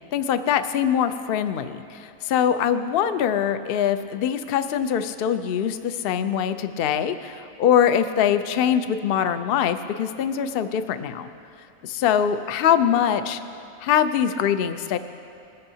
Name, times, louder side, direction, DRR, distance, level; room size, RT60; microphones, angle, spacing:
voice 1, 0.1-11.3 11.8-13.4 13.8-15.0, left 9 dB, 75° left, 10 dB, 0.5 m, -23 dB
20.5 x 13.5 x 2.8 m, 2.6 s
omnidirectional pair, 1.6 m